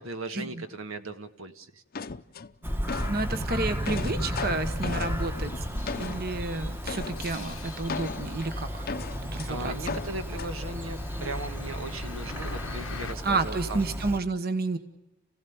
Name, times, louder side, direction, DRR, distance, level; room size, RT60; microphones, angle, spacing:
voice 1, 0.0-1.8 9.5-13.8, right 2 dB, 80° right, 9 dB, 1.5 m, -38 dB
sound 1, 1.9-3.2 3.6-6.4 6.9-7.3 7.9-9.5 9.9-10.5, left 5 dB, 45° left, 0.7 m, -37 dB
Bird vocalization bird call bird song, 2.6-14.2, equal, 10° right, 1.1 m, -34 dB
voice 2, 3.1-8.9 9.3-9.7 13.2-14.8, right 3 dB, 50° right, 10 dB, 1.2 m, -30 dB
sound 2, 4.1-13.1, left 5 dB, 80° left, 0.9 m, -45 dB
30.0 x 16.5 x 7.1 m, 1.1 s
head